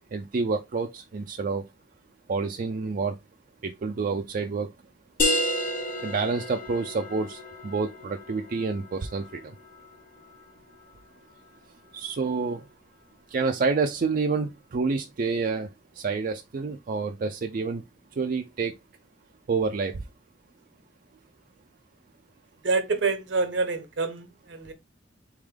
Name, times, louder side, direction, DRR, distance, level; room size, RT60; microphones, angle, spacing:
voice 1, 0.1-1.6 2.3-3.2 3.6-4.7 6.0-9.5 11.9-12.6 13.3-15.7 16.0-17.8 18.2-18.7 19.5-20.0, right 4 dB, 50° right, 0.4 m, -28 dB
sound 1, 5.2-10.5, left 1 dB, 50° left, 1.0 m, -31 dB
voice 2, 22.6-24.7, right 4 dB, 70° right, 0.9 m, -27 dB
4.0 x 3.6 x 3.3 m
head